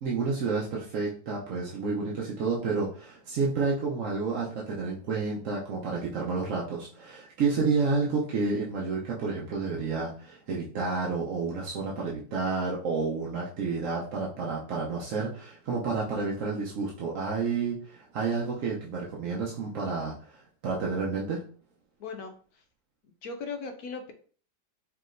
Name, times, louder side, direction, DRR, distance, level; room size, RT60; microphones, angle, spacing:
voice 1, 0.0-20.2 20.6-21.4, right 4 dB, 60° right, -4 dB, 0.8 m, -30 dB
voice 2, 22.0-22.6 23.0-24.1, left 4 dB, 75° left, 5 dB, 0.9 m, -38 dB
4.7 x 3.3 x 2.5 m, 0.43 s
omnidirectional pair, 2.1 m